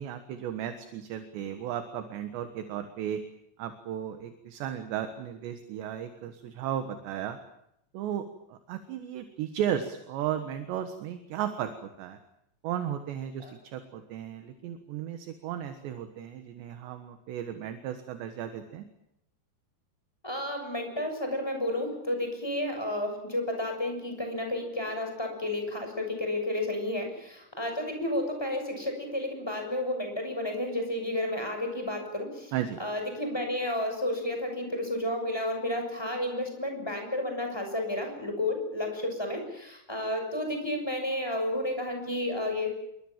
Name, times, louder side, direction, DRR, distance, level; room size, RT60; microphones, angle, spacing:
voice 1, 0.0-3.2 3.6-7.4 7.9-12.2 12.6-13.5 13.7-18.9 32.5-32.8, right 10 dB, 75° right, 8 dB, 3.6 m, -35 dB
voice 2, 20.2-32.5 32.8-42.9, left 1 dB, 5° left, 4 dB, 6.4 m, -31 dB
27.5 x 24.0 x 7.5 m, 0.80 s
omnidirectional pair, 5.2 m